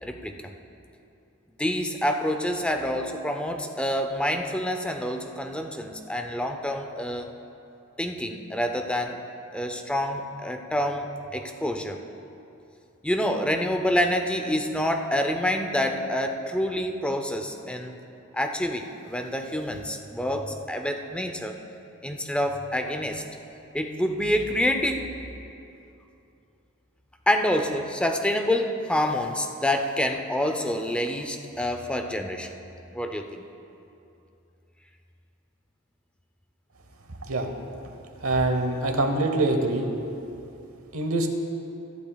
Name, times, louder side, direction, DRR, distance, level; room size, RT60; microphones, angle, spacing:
voice 1, 0.0-0.5 1.6-7.3 8.0-9.2 9.5-12.0 13.0-18.0 18.3-21.6 22.0-23.2 23.7-25.1 27.3-32.5 32.9-33.4, left 1 dB, 5° left, 5 dB, 0.5 m, -27 dB
voice 2, 38.2-39.9 40.9-41.3, right 2 dB, 85° right, 4 dB, 1.0 m, -24 dB
22.5 x 8.4 x 2.3 m, 2.8 s
head